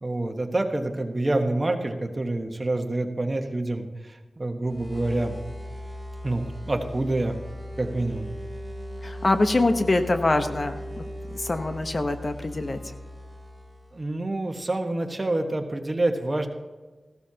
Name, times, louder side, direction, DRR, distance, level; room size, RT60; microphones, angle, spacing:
voice 1, 0.0-5.3 6.2-7.4 7.8-8.3 13.9-16.5, right 2 dB, 30° right, 5 dB, 1.4 m, -27 dB
sound 1, 4.6-14.1, equal, 5° left, 2.7 m, -38 dB
voice 2, 9.0-11.0 11.3-12.8, left 2 dB, 45° left, 7 dB, 1.0 m, -24 dB
15.5 x 12.5 x 2.9 m, 1.3 s
wide cardioid pair, 65°, 0 cm